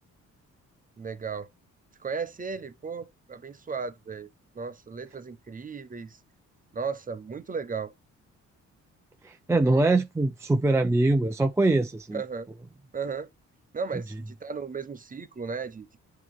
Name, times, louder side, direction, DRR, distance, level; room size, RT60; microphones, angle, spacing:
voice 1, 1.0-1.5 2.0-4.3 4.5-6.2 6.7-7.9 12.1-12.5 12.9-13.3 13.7-16.0, right 5 dB, 30° right, 0.8 m, -35 dB
voice 2, 9.2-12.2, right 2 dB, 10° right, 0.5 m, -23 dB
8.9 x 3.1 x 3.5 m
cardioid pair, 90°, 30 cm